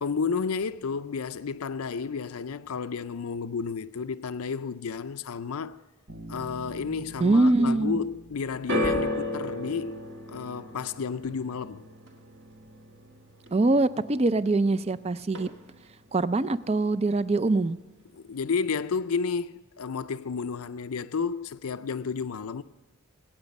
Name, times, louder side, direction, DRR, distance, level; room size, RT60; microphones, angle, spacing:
voice 1, 0.0-5.8 6.3-10.0 10.3-11.9 18.1-22.6, left 5 dB, 85° left, 0.5 m, -31 dB
Bass guitar, 6.1-9.8, right 2 dB, 85° right, 2.4 m, -46 dB
voice 2, 7.2-8.0 13.5-15.5 16.1-17.8, right 2 dB, 30° right, 0.4 m, -23 dB
sound 1, 8.7-15.0 15.2-15.9 16.6-16.7, left 1 dB, 55° right, 1.9 m, -34 dB
24.5 x 8.9 x 5.3 m
head